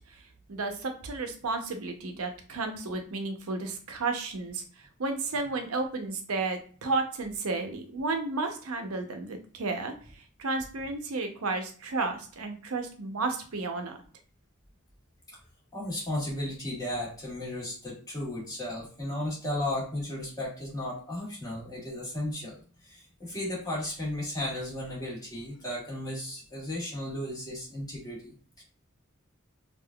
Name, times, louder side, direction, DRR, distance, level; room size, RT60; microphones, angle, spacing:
voice 1, 0.5-4.6 5.0-9.9 10.4-14.0, right 3 dB, 90° right, 6 dB, 0.6 m, -32 dB
voice 2, 15.7-28.6, left 1 dB, 20° left, -5 dB, 1.4 m, -35 dB
3.6 x 2.4 x 2.2 m, 0.43 s
head